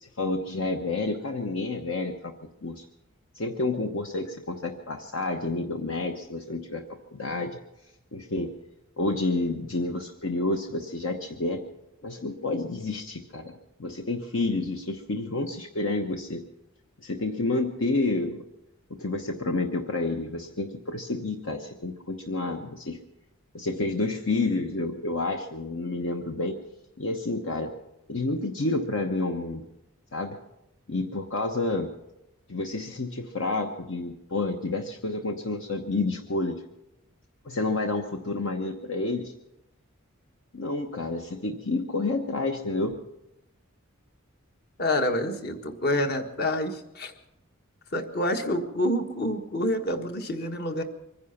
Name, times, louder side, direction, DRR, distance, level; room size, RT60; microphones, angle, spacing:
voice 1, 0.0-2.3 2.6-2.8 3.4-6.8 7.1-7.6 8.1-8.5 9.0-11.6 12.0-13.5 13.8-16.4 17.0-18.4 19.0-23.0 23.5-26.6 27.0-27.7 28.1-29.6 30.1-30.4 30.9-31.9 32.5-36.6 37.4-39.3 40.5-43.0, left 2 dB, 65° left, 4 dB, 1.0 m, -29 dB
voice 2, 44.8-47.1 47.9-50.8, left 1 dB, 50° left, 6 dB, 1.5 m, -27 dB
24.0 x 10.5 x 5.8 m, 0.90 s
head